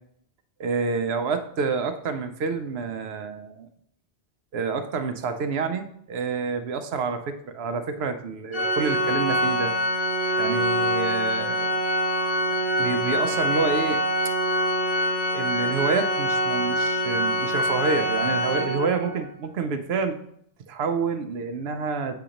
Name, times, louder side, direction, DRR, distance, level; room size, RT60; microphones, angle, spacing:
voice 1, 0.6-3.7 4.5-9.7 10.4-11.8 12.8-14.0 15.3-20.2 20.7-22.2, right 5 dB, 85° right, 7 dB, 0.9 m, -28 dB
Organ, 8.5-19.2, equal, 40° left, 1.0 m, -25 dB
7.6 x 2.9 x 5.0 m, 0.69 s
omnidirectional pair, 1.0 m